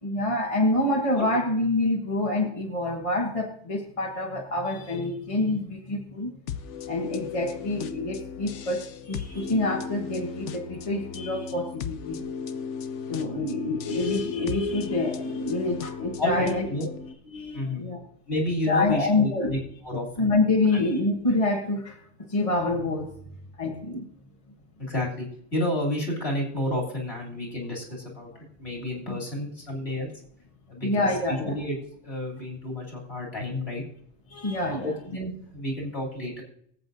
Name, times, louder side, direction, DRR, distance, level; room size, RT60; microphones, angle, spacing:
voice 1, 0.0-6.3 6.9-12.2 13.1-16.6 17.3-18.0 18.7-19.6 20.2-22.0 22.3-23.1 23.6-24.1 29.1-29.2 30.8-31.6 34.3-35.0, left 2 dB, 30° left, 0 dB, 1.4 m, -26 dB
sound 1, 6.5-17.1, left 6 dB, 80° left, 1.0 m, -37 dB
voice 2, 16.2-16.9 17.5-17.8 18.3-19.6 19.8-20.3 20.7-20.9 24.8-28.3 28.6-30.1 30.7-31.7 32.0-33.8 34.7-36.4, left 1 dB, 60° left, -2 dB, 3.4 m, -30 dB
23.0 x 8.2 x 2.7 m, 0.66 s
omnidirectional pair, 1.2 m